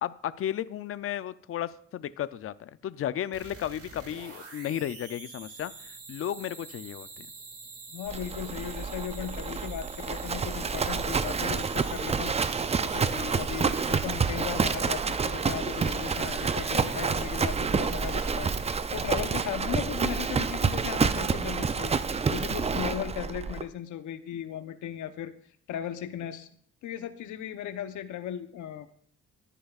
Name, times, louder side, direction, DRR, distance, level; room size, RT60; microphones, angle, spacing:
voice 1, 0.0-7.3, left 11 dB, 50° left, 15 dB, 0.5 m, -34 dB
sound 1, 3.3-19.2, right 3 dB, 50° right, 2.3 m, -46 dB
voice 2, 7.9-12.3 12.8-21.9 22.3-25.3 25.7-26.5 26.8-28.9, left 10 dB, 80° left, 9 dB, 0.9 m, -37 dB
Livestock farm animals working animals, 8.1-23.6, right 5 dB, 20° right, 0.4 m, -28 dB
14.0 x 10.0 x 2.4 m, 0.62 s
cardioid pair, 90°, 30 cm